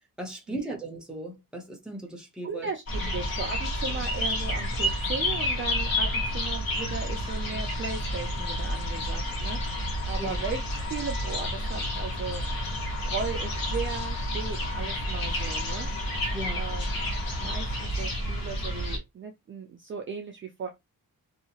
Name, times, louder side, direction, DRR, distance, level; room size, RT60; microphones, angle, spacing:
voice 1, 0.2-2.7 3.0-3.1 10.2-10.4 16.3-16.7, right 1 dB, ahead, 0.7 m, -37 dB
voice 2, 2.4-12.7 13.0-15.9 16.5-20.7, right 5 dB, 35° right, 0.4 m, -37 dB
sound 1, 2.9-19.0, equal, 75° left, 1.3 m, -30 dB
sound 2, 2.9-17.9, left 8 dB, 40° left, 0.6 m, -41 dB
2.7 x 2.4 x 2.8 m
wide cardioid pair, 165°, 36 cm